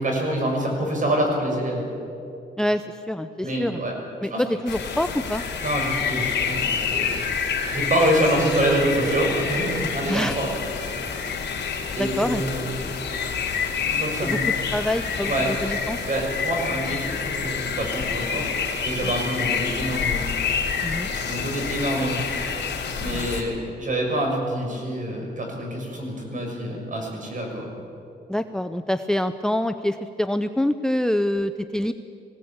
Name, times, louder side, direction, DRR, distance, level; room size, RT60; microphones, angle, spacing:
voice 1, 0.0-1.9 3.4-3.9 4.3-4.4 5.6-7.2 7.7-10.5 10.8-11.1 12.0-12.9 13.9-14.5 15.2-15.5 16.0-18.5 18.8-20.3 21.1-22.3 22.9-27.7, right 1 dB, 45° right, 1 dB, 6.5 m, -26 dB
voice 2, 2.6-3.8 4.2-5.4 10.1-10.4 12.0-12.4 14.2-14.4 14.7-16.0 19.0-19.1 20.8-21.1 23.1-23.2 28.3-31.9, left 1 dB, 5° left, 11 dB, 0.7 m, -25 dB
sound 1, 4.7-23.4, left 6 dB, 70° left, 3.9 m, -28 dB
20.5 x 17.0 x 8.8 m, 2.6 s
cardioid pair, 90°, 19 cm